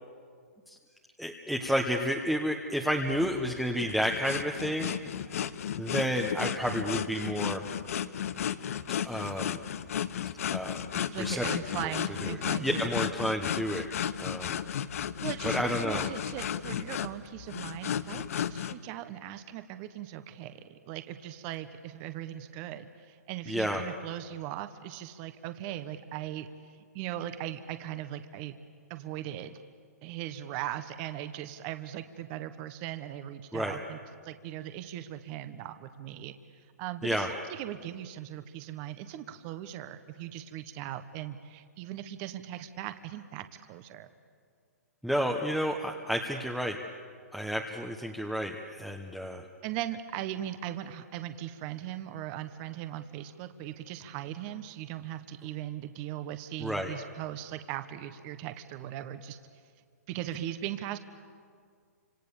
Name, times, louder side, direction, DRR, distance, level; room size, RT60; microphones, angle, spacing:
voice 1, 1.2-5.0 5.3-5.4 5.8-7.6 9.0-9.6 10.5-10.8 11.2-11.4 11.8-11.9 12.6-13.9 14.2-14.6 15.4-16.1 23.5-23.8 33.5-33.7 37.0-37.3 45.0-46.8 47.3-49.4 56.6-56.9, equal, ahead, 1 dB, 1.2 m, -31 dB
sound 1, 3.1-18.7, left 9 dB, 60° left, 1.0 m, -34 dB
voice 2, 11.1-13.0 15.2-26.5 26.9-28.5 28.9-29.6 30.0-34.0 34.2-36.3 36.8-44.1 49.6-59.4 60.1-61.0, right 12 dB, 35° right, 10 dB, 1.2 m, -39 dB
29.5 x 26.5 x 7.2 m, 2.1 s
hypercardioid pair, 140°, 9 cm